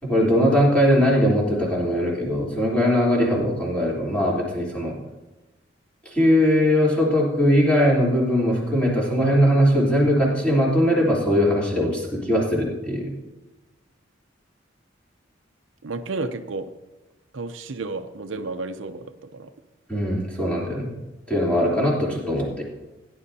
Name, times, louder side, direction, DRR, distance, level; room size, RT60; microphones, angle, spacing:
voice 1, 0.0-5.0 6.1-13.1 19.9-20.9 21.3-22.6, equal, 5° left, -5 dB, 3.5 m, -20 dB
voice 2, 15.8-16.7 17.3-19.1 19.3-19.5, right 3 dB, 80° right, 8 dB, 0.7 m, -31 dB
17.0 x 10.5 x 2.8 m, 1.1 s
head